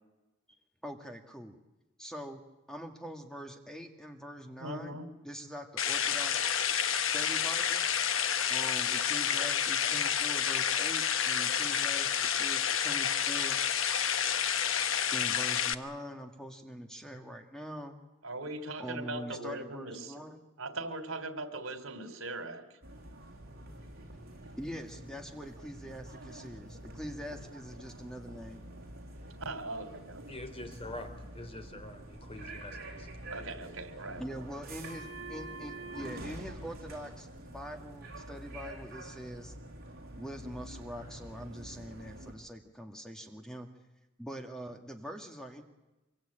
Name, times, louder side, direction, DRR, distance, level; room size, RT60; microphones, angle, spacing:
voice 1, 0.8-1.6 2.0-2.4 2.7-6.5 6.9-7.9 8.5-13.6 15.1-18.0 18.8-20.4 24.6-28.6 34.2-39.5 40.2-43.7 44.2-45.6, equal, 5° left, 4 dB, 1.7 m, -44 dB
voice 2, 4.6-5.1 18.2-20.2 20.6-22.8 29.5-30.4 33.3-34.3, right 2 dB, 75° right, 9 dB, 3.6 m, -40 dB
sound 1, 5.8-15.7, left 8 dB, 65° left, 1.1 m, -29 dB
sound 2, 22.8-42.3, right 1 dB, 50° right, 6.5 m, -46 dB
voice 3, 30.3-33.1, left 1 dB, 30° left, 7 dB, 3.4 m, -45 dB
25.5 x 23.0 x 8.8 m, 1.1 s
head